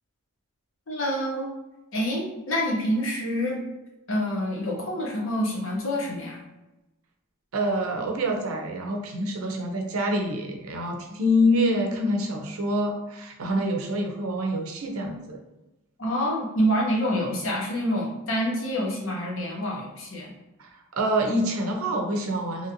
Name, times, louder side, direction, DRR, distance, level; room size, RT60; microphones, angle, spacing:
voice 1, 0.9-1.5 1.9-3.6 4.1-6.4 16.0-20.3, equal, 65° left, -2 dB, 0.9 m, -27 dB
voice 2, 7.5-15.4 20.6-22.7, equal, 80° right, 2 dB, 0.6 m, -26 dB
2.9 x 2.6 x 2.7 m, 1.0 s
head